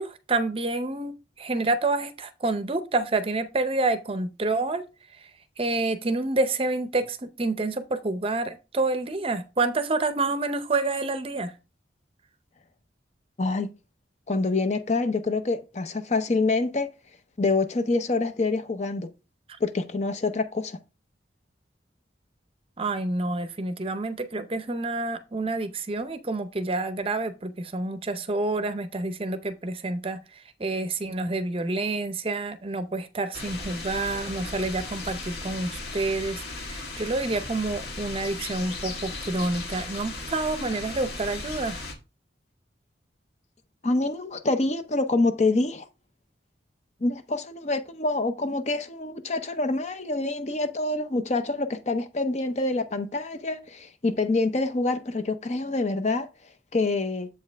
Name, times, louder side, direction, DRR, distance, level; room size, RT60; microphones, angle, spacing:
voice 1, 0.0-4.8 5.1-5.3 5.6-11.6 22.8-41.8, right 2 dB, 30° right, 0.6 m, -28 dB
voice 2, 13.4-13.7 14.3-16.9 17.4-19.1 19.6-20.8 43.8-45.8 47.0-56.3 56.7-57.3, left 3 dB, 40° left, 0.6 m, -26 dB
sound 1, 33.3-41.9, left 3 dB, 60° left, 1.6 m, -36 dB
7.6 x 5.2 x 3.4 m
head